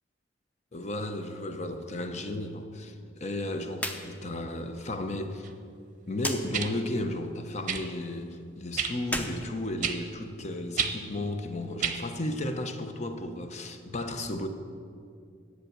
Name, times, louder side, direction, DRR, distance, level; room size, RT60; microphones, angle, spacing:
voice 1, 0.7-5.5 6.1-14.5, left 1 dB, 35° left, 7 dB, 0.8 m, -34 dB
sound 1, 3.7-4.0 4.3-4.4 6.2-6.4 9.0-10.3, equal, 10° left, 0.7 m, -34 dB
sound 2, 5.4-5.5 6.5-6.7 7.7-7.9 8.8-8.9 9.8-10.0 10.8-10.9 11.8-12.0 12.9-13.0, right 7 dB, 40° right, 0.7 m, -29 dB
10.5 x 8.1 x 6.7 m, 2.4 s
head